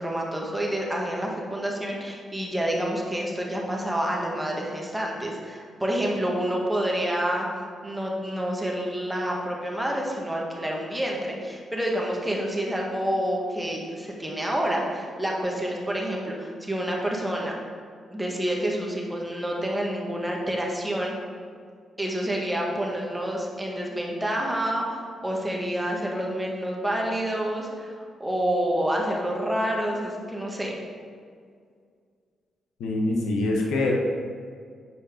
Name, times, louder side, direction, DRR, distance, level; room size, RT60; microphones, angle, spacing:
voice 1, 0.0-7.5 7.8-17.6 18.1-21.1 22.0-30.8, right 1 dB, 10° right, -1 dB, 1.7 m, -28 dB
voice 2, 32.8-33.9, left 2 dB, 85° left, 0 dB, 1.0 m, -24 dB
8.1 x 5.0 x 3.8 m, 2.1 s
supercardioid pair, 55°, 0 cm